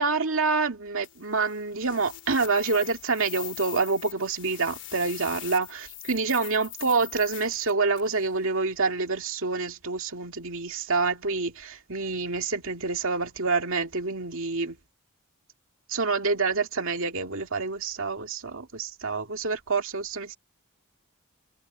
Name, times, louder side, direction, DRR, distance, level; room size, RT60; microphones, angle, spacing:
voice 1, 0.0-14.8 15.9-20.4, right 4 dB, 65° right, 2.5 m, -27 dB
sound 1, 1.0-8.2, left 15 dB, 55° left, 2.9 m, -42 dB
head